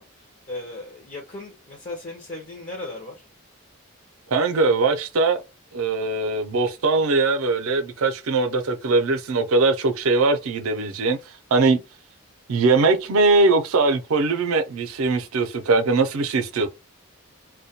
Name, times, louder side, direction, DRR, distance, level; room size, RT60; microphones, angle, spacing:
voice 1, 0.0-3.3, left 2 dB, 35° left, 0.5 m, -37 dB
voice 2, 4.3-5.4 5.7-11.2 11.5-11.8 12.5-16.7, right 3 dB, 80° right, 0.5 m, -21 dB
2.2 x 2.1 x 2.7 m
head